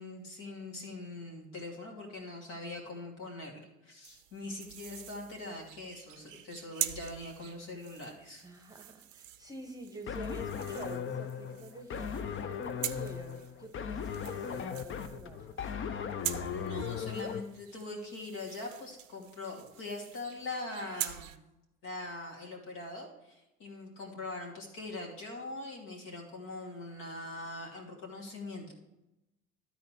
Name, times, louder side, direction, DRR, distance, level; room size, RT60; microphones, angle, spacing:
voice 1, 0.0-8.4 16.5-21.4 21.8-28.7, left 2 dB, 55° left, -1 dB, 2.7 m, -42 dB
sound 1, 4.0-21.4, right 12 dB, 85° right, 0.6 m, -44 dB
voice 2, 8.4-15.6, right 1 dB, 10° right, 4 dB, 1.2 m, -47 dB
sound 2, 10.1-17.4, left 7 dB, 35° left, 0.7 m, -37 dB
13.0 x 4.3 x 4.4 m, 0.93 s
figure-of-eight pair, 60°, 38 cm